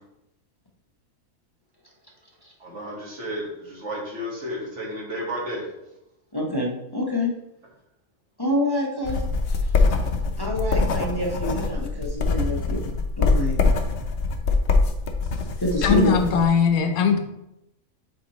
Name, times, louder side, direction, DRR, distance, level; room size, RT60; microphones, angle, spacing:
voice 1, 2.6-5.7, equal, 55° right, -3 dB, 1.9 m, -32 dB
voice 2, 6.3-7.3 8.4-9.2 9.5-9.7 10.4-12.9 13.2-13.6 15.6-16.1, left 1 dB, 20° left, -3 dB, 0.9 m, -26 dB
sound 1, 9.0-16.4, left 3 dB, 55° left, 0.8 m, -23 dB
voice 3, 15.8-17.2, left 6 dB, 85° left, 6 dB, 1.2 m, -20 dB
7.4 x 4.8 x 3.1 m, 0.86 s
omnidirectional pair, 1.5 m